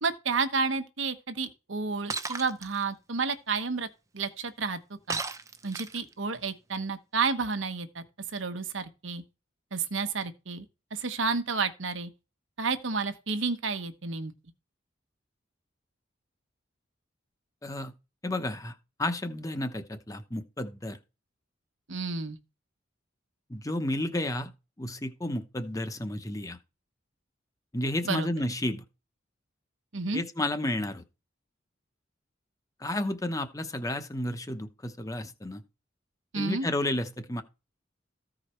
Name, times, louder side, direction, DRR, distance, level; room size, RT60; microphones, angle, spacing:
voice 1, 0.0-3.9 4.1-4.8 5.1-5.2 5.6-8.0 8.3-9.2 9.7-10.6 10.9-12.1 12.6-14.3 21.9-22.4 28.0-28.3 29.9-30.2 36.3-36.7, right 4 dB, 80° right, 1.1 m, -31 dB
Shatter, 2.1-2.7 5.1-6.1, right 4 dB, 15° right, 0.7 m, -34 dB
voice 2, 17.6-17.9 18.2-21.0 23.5-24.5 24.8-26.6 27.7-28.8 30.1-31.0 32.8-35.6 36.3-37.4, left 1 dB, 15° left, 0.9 m, -32 dB
14.5 x 4.9 x 4.4 m
head